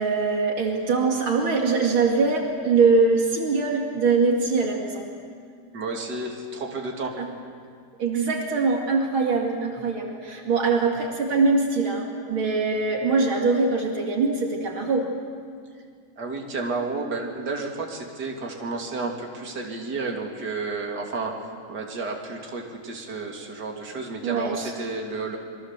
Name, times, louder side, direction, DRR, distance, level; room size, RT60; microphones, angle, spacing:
voice 1, 0.0-5.1 7.2-7.3 8.0-15.1 24.2-24.7, right 4 dB, 80° right, 1 dB, 3.2 m, -23 dB
voice 2, 5.7-7.2 16.2-25.4, right 3 dB, 50° right, 1 dB, 3.4 m, -31 dB
27.5 x 22.5 x 7.5 m, 2.1 s
omnidirectional pair, 2.2 m